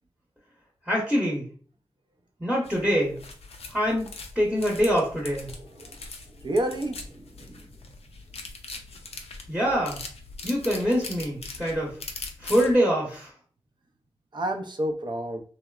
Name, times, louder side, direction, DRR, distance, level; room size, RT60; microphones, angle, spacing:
voice 1, 0.9-1.5 2.4-3.2 3.7-5.5 9.5-10.0 10.4-12.0 12.4-13.3, equal, 5° right, -4 dB, 0.9 m, -24 dB
sound 1, 2.6-12.8, left 3 dB, 80° left, 0.4 m, -41 dB
voice 2, 5.6-6.0 6.3-7.8 14.3-15.4, right 1 dB, 50° right, 3 dB, 0.5 m, -30 dB
3.0 x 2.0 x 2.3 m, 0.43 s
wide cardioid pair, 65°, 10 cm